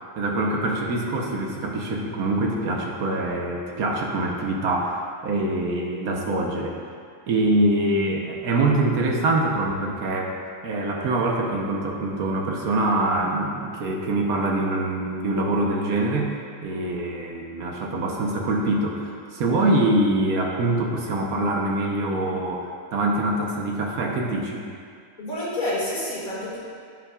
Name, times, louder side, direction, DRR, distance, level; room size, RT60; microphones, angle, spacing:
voice 1, 0.2-6.8 7.3-10.3 10.6-16.3 16.6-24.7, right 2 dB, 85° right, -1 dB, 1.4 m, -24 dB
voice 2, 25.2-26.6, left 1 dB, 80° left, -7 dB, 2.7 m, -28 dB
15.5 x 5.9 x 2.4 m, 2.2 s
omnidirectional pair, 1.5 m